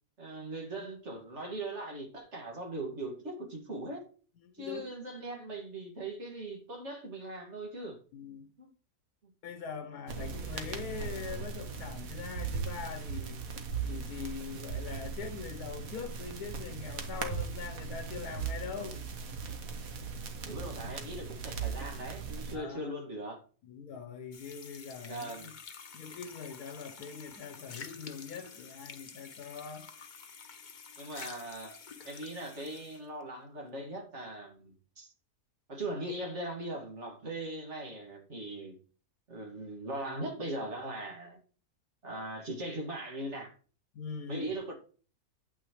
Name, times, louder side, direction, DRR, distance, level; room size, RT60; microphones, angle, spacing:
voice 1, 0.2-4.1 4.5-8.0 8.6-8.7 9.2-9.3 20.4-23.4 25.1-25.5 31.0-31.8 32.0-35.1 35.7-38.8 39.3-41.4 42.0-43.5 44.3-44.7, right 1 dB, 50° right, 2.3 m, -40 dB
voice 2, 4.4-4.9 8.1-8.5 9.4-13.4 13.8-19.0 22.5-23.0 23.6-25.5 25.9-29.9 43.9-44.5, left 6 dB, 85° left, 1.3 m, -42 dB
sound 1, 10.1-22.6, right 5 dB, 65° right, 1.5 m, -38 dB
sound 2, 24.3-33.1, left 6 dB, 40° left, 0.7 m, -49 dB
8.9 x 8.8 x 3.1 m
omnidirectional pair, 1.6 m